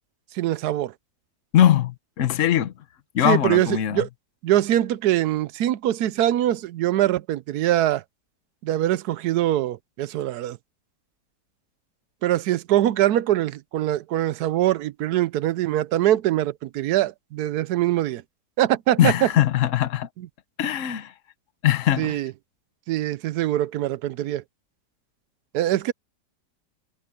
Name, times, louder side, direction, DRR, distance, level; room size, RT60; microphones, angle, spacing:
voice 1, 0.3-0.9 3.2-4.1 4.4-8.0 8.6-10.6 12.2-18.2 18.6-19.1 22.0-22.3 22.9-24.4 25.5-25.9, right 13 dB, 75° right, 1.1 m, -23 dB
voice 2, 1.5-2.7 3.1-4.0 19.0-20.1 20.6-21.1 21.6-22.2, left 11 dB, 55° left, 1.2 m, -21 dB
omnidirectional pair, 1.8 m